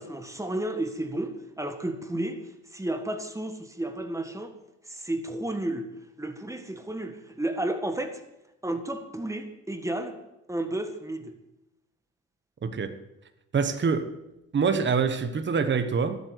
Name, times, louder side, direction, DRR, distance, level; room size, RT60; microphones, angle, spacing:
voice 1, 0.0-2.4 2.7-4.5 4.9-5.9 6.2-8.2 8.6-10.2 10.5-11.3, right 1 dB, 10° right, 1.7 m, -32 dB
voice 2, 12.6-12.9 13.5-14.1 14.5-16.2, right 5 dB, 40° right, 1.3 m, -25 dB
13.0 x 8.1 x 9.4 m
cardioid pair, 90°, 30 cm